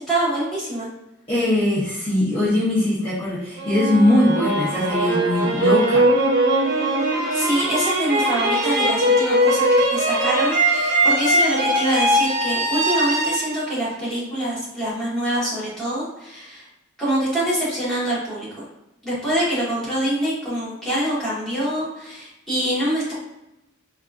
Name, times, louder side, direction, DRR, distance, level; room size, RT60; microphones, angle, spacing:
voice 1, 0.1-0.9 7.3-16.6 17.0-18.6 19.0-23.1, right 1 dB, 5° left, -10 dB, 1.3 m, -25 dB
voice 2, 1.3-6.0, left 1 dB, 25° left, -10 dB, 0.9 m, -20 dB
sound 1, 3.6-14.6, right 1 dB, 55° right, 0.8 m, -20 dB
4.1 x 2.4 x 2.4 m, 0.93 s
head